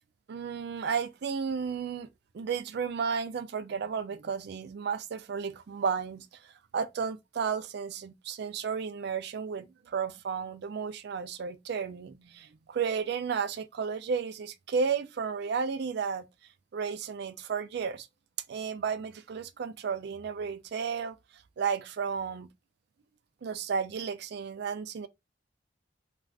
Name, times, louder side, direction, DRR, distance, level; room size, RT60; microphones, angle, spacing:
voice 1, 0.3-2.1 2.3-6.3 6.7-16.3 16.7-18.1 18.5-21.2 21.6-22.5 23.4-25.1, right 6 dB, 65° right, 0.4 m, -33 dB
2.4 x 2.4 x 3.2 m
head